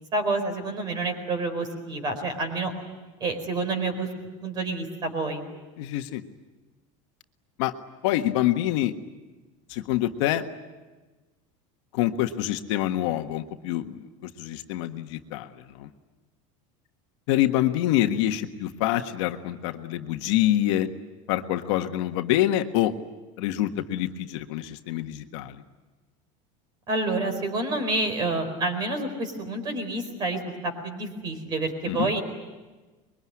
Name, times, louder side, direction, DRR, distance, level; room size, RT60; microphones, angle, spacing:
voice 1, 0.1-2.7 3.2-5.4 26.9-32.2, right 2 dB, 25° right, 8 dB, 4.4 m, -28 dB
voice 2, 5.8-6.2 7.6-7.7 8.0-8.9 9.7-10.4 11.9-15.9 17.3-20.9 21.3-22.9 23.4-25.6 31.9-32.1, left 13 dB, 65° left, 6 dB, 1.5 m, -26 dB
25.0 x 22.5 x 9.8 m, 1.2 s
cardioid pair, 175°, 16 cm